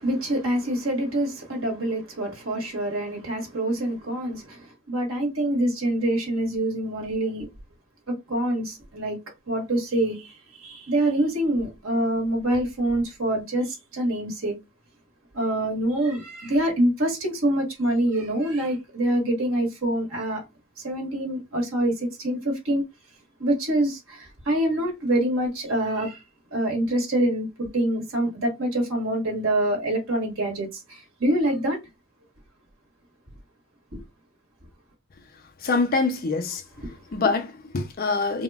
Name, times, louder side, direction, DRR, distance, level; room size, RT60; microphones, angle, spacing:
voice 1, 0.0-7.5 8.3-9.2 9.5-14.6 15.3-20.4 20.8-22.8 23.4-26.2 26.5-31.8 33.9-34.0 36.8-36.9, right 1 dB, 75° right, 1.2 m, -25 dB
voice 2, 35.6-36.6 37.1-38.4, left 4 dB, 45° left, 0.5 m, -24 dB
3.6 x 2.2 x 2.3 m
head